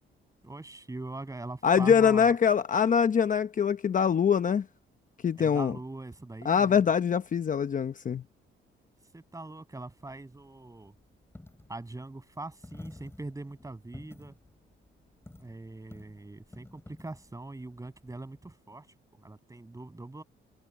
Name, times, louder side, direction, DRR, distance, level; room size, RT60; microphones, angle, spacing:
voice 1, 0.4-2.3 5.4-6.8 9.1-11.0 11.7-14.4 15.4-20.2, right 2 dB, 15° right, 7.1 m, -42 dB
voice 2, 1.6-4.7 5.2-5.8 6.4-8.2, left 7 dB, 40° left, 0.9 m, -24 dB
Coin (dropping), 10.0-18.5, left 2 dB, 10° left, 6.5 m, -52 dB
cardioid pair, 90°, 20 cm